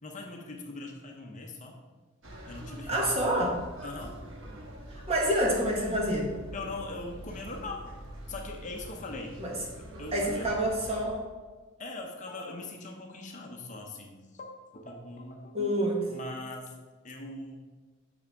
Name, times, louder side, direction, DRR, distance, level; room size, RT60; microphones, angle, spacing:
voice 1, 0.0-1.8 2.5-3.3 3.8-4.2 6.5-7.9 8.3-9.4 10.0-10.5 11.8-15.7 16.1-16.7 17.0-17.6, left 2 dB, 35° left, 2 dB, 0.7 m, -41 dB
sound 1, 2.2-11.1, right 1 dB, 65° right, 1.2 m, -44 dB
voice 2, 2.9-3.6 5.1-6.3 9.4-9.5 10.1-11.2 15.5-16.0, equal, 30° right, -1 dB, 1.3 m, -27 dB
6.7 x 6.2 x 3.5 m, 1.4 s
head